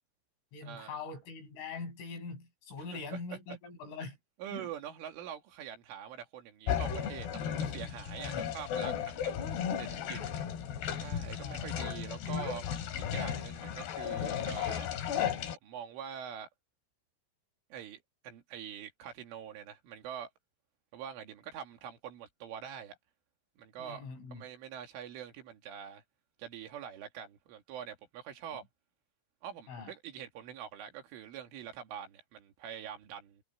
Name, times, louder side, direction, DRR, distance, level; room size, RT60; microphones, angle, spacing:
voice 1, 0.5-4.2 4.5-4.7 8.1-8.4 11.4-11.7 23.8-24.4 29.7-29.9, left 4 dB, 85° left, 10.5 m, -43 dB
voice 2, 2.8-3.6 4.4-9.3 9.8-10.2 11.0-12.7 13.0-14.9 15.6-16.5 17.7-20.3 20.9-23.0 23.6-24.0 24.3-26.0 26.4-28.6 29.4-33.4, right 9 dB, 80° right, 5.1 m, -45 dB
sound 1, 6.7-15.6, left 8 dB, 60° left, 4.2 m, -35 dB
omnidirectional pair, 5.6 m